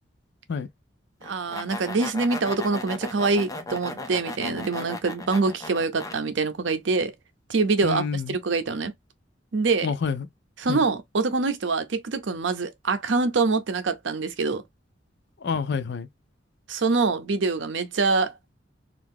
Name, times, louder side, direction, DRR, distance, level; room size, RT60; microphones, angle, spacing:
sound 1, 1.2-6.2, left 2 dB, 20° left, 0.6 m, -36 dB
voice 1, 1.2-7.1 7.5-8.0 8.3-8.9 9.5-9.9 10.6-14.6 16.7-18.4, right 4 dB, 70° right, 0.6 m, -25 dB
voice 2, 7.8-8.4 9.8-10.3 10.7-10.8 15.4-16.1, left 5 dB, 65° left, 0.5 m, -28 dB
2.7 x 2.5 x 3.6 m
head